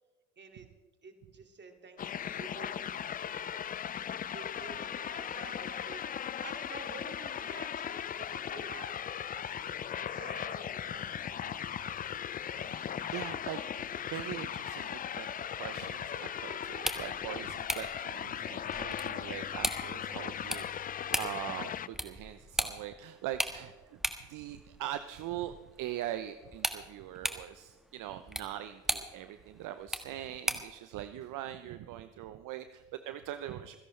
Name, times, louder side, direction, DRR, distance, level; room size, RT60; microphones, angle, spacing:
voice 1, 0.4-0.7 1.0-3.5 4.3-12.1, right 4 dB, 30° right, 5 dB, 2.3 m, -51 dB
sound 1, 2.0-21.9, left 9 dB, 25° left, 0.4 m, -38 dB
voice 2, 12.6-15.3 15.6-24.0 24.3-33.8, right 12 dB, 55° right, 10 dB, 0.7 m, -42 dB
sound 2, 16.7-30.8, equal, ahead, 1.3 m, -39 dB
26.5 x 11.0 x 3.2 m, 1.3 s
supercardioid pair, 85°, 38 cm